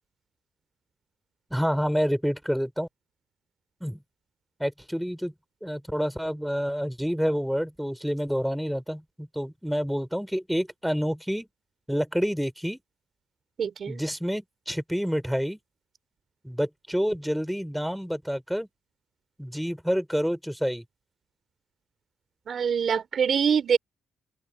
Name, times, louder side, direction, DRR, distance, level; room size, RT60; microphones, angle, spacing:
voice 1, 1.5-2.9 3.8-4.0 4.6-5.3 5.6-11.5 11.9-12.8 13.9-15.6 16.4-18.7 19.4-20.8, equal, ahead, 4.6 m, -28 dB
voice 2, 13.6-14.0 22.5-23.8, right 7 dB, 50° right, 4.4 m, -24 dB
cardioid pair, 90°, 0 cm